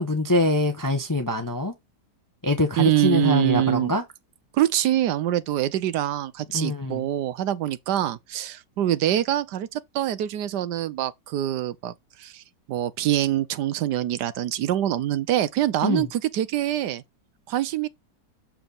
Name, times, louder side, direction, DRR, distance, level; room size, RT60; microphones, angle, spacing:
voice 1, 0.0-1.7 2.4-4.0 6.5-7.0 15.8-16.1, left 2 dB, 20° left, 0.5 m, -24 dB
voice 2, 2.8-3.9 4.5-11.9 12.2-12.4 12.7-17.0 17.5-17.9, right 12 dB, 80° right, 1.3 m, -24 dB
7.1 x 4.3 x 3.8 m
omnidirectional pair, 1.8 m